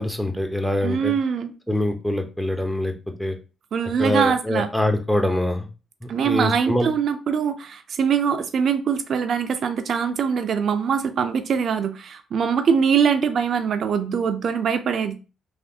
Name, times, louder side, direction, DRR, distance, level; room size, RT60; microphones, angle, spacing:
voice 1, 0.0-1.1 1.7-2.9 3.2-3.3 4.0-5.7 6.0-6.9, left 1 dB, 5° left, 5 dB, 0.7 m, -24 dB
voice 2, 0.8-1.5 3.7-4.7 6.1-15.1, right 7 dB, 65° right, 8 dB, 0.3 m, -23 dB
3.3 x 2.3 x 2.7 m, 0.32 s
supercardioid pair, 55°, 0 cm